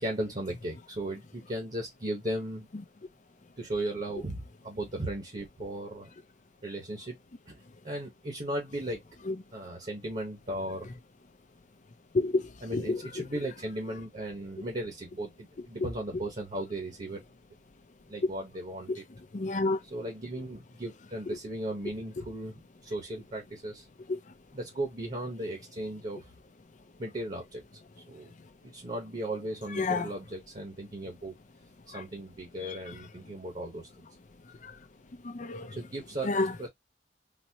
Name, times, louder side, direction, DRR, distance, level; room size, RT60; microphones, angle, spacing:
voice 1, 0.0-2.7 3.6-6.1 6.6-7.2 7.5-9.0 9.5-10.9 12.6-17.2 18.1-19.0 19.8-23.9 24.5-26.3 27.0-27.6 28.1-28.3 28.6-31.4 31.9-33.9 35.7-36.7, right 1 dB, 40° right, 1.1 m, -36 dB
voice 2, 12.1-13.0 19.3-19.8 29.8-30.1 35.2-35.7 36.3-36.5, left 3 dB, 45° left, 0.6 m, -28 dB
4.1 x 2.1 x 2.8 m
head